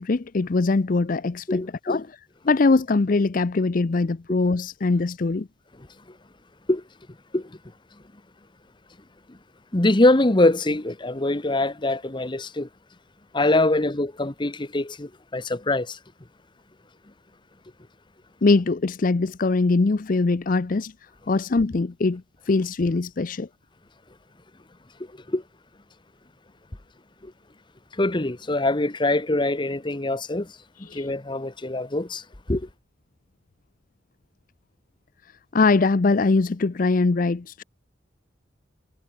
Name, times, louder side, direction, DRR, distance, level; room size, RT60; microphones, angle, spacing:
voice 1, 0.0-2.1 2.5-5.5 18.4-20.9 21.3-23.5 30.9-31.1 35.5-37.6, left 3 dB, 50° left, 0.5 m, -22 dB
voice 2, 1.5-2.0 4.3-4.4 5.8-5.9 6.7-6.8 7.3-7.6 9.3-9.4 9.7-12.7 13.3-16.0 25.3-25.4 27.2-27.3 27.9-30.5 30.9-32.2 32.5-32.7, left 2 dB, 25° left, 1.0 m, -23 dB
head